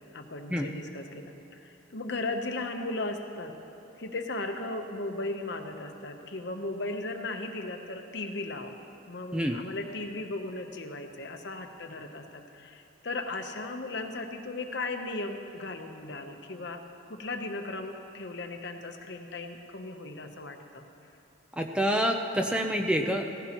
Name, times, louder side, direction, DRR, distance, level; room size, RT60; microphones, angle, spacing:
voice 1, 0.1-3.5 4.0-8.8 9.1-16.8 17.1-20.8, left 2 dB, 55° left, 5 dB, 0.9 m, -36 dB
voice 2, 21.6-23.3, equal, 5° right, 3 dB, 0.5 m, -27 dB
17.0 x 15.5 x 3.0 m, 2.9 s
head